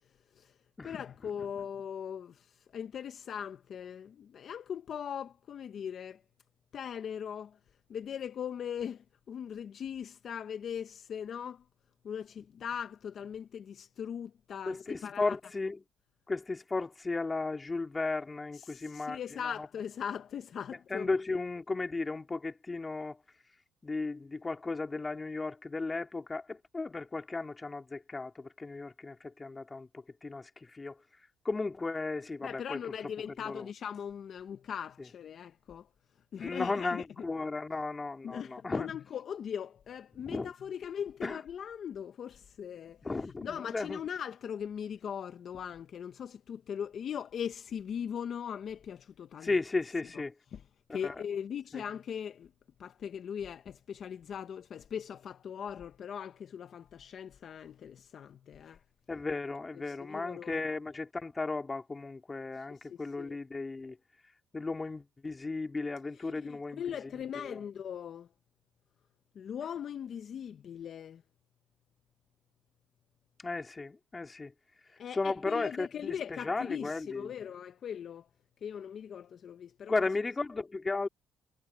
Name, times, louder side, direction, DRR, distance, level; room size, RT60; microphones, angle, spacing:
voice 1, 0.8-6.2 6.7-7.6 7.9-11.6 12.0-15.4 18.5-21.1 32.4-35.9 36.3-37.0 38.2-43.0 43.4-49.5 50.5-50.6 50.9-52.5 52.8-58.8 59.9-60.6 62.8-63.4 66.2-68.3 69.3-71.2 75.0-78.3 78.6-79.9, left 8 dB, 55° left, 0.8 m, -40 dB
voice 2, 14.7-15.8 16.3-19.7 20.9-23.2 23.8-31.0 31.4-32.8 33.4-33.7 36.3-38.9 40.1-40.5 41.2-41.4 43.0-44.0 49.4-50.3 50.9-51.1 51.7-51.8 59.1-64.0 64.5-66.8 67.3-67.6 73.4-74.5 75.1-77.3 79.9-81.1, left 3 dB, 20° left, 2.9 m, -35 dB
cardioid pair, 90°, 0 cm